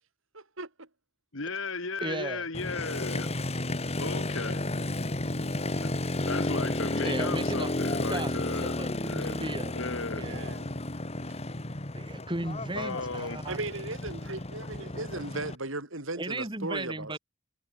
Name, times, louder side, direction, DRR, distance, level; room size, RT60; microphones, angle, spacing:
voice 1, 0.3-0.9 10.2-10.7 13.5-17.2, right 2 dB, 65° right, 5.2 m, -37 dB
voice 2, 1.3-3.3 4.0-4.6 5.8-5.9 6.3-9.4 9.7-10.3 12.7-13.4, left 3 dB, 65° left, 2.4 m, -35 dB
voice 3, 2.0-2.4 7.0-7.7 8.1-9.7 10.2-10.5 11.9-13.6 16.1-17.2, right 2 dB, 25° right, 3.2 m, -36 dB
Motorcycle, 2.5-15.6, left 1 dB, 30° left, 2.0 m, -32 dB
head